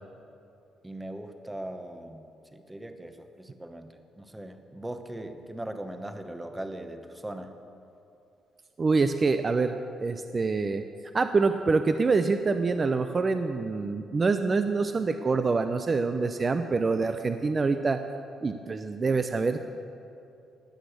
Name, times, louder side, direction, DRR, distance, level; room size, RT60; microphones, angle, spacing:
voice 1, 0.8-7.5, right 1 dB, 10° right, 7 dB, 1.0 m, -40 dB
voice 2, 8.8-10.8 11.1-18.0 18.4-19.6, right 4 dB, 35° right, 8 dB, 0.6 m, -26 dB
18.0 x 6.2 x 8.4 m, 2.7 s
cardioid pair, 90°, 0 cm